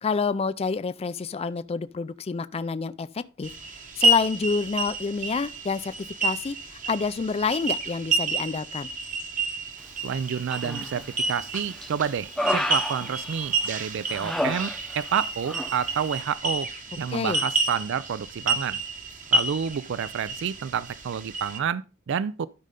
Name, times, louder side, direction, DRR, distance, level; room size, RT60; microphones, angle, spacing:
voice 1, 0.0-3.5 4.0-5.9 6.2-8.9 17.1-17.4, left 5 dB, 30° left, 0.4 m, -28 dB
sound 1, 3.4-21.6, right 2 dB, 40° right, 1.3 m, -30 dB
voice 2, 10.0-16.7 17.0-18.8 19.3-22.5, right 7 dB, 60° right, 0.4 m, -29 dB
Human voice, 10.5-11.1 11.5-13.7 14.1-15.2 15.4-15.7, left 1 dB, ahead, 0.7 m, -31 dB
12.5 x 5.5 x 3.7 m
head